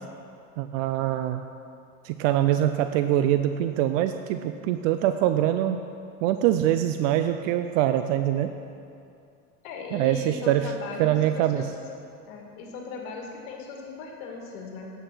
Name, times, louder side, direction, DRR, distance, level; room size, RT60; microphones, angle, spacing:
voice 1, 0.6-1.4 2.0-5.8 6.2-8.5 9.9-10.7 11.0-11.6, right 12 dB, 55° right, 9 dB, 0.5 m, -24 dB
voice 2, 9.6-11.7 12.3-14.9, left 4 dB, 65° left, 1 dB, 2.2 m, -38 dB
9.7 x 8.0 x 6.2 m, 2.5 s
supercardioid pair, 120°, 45 cm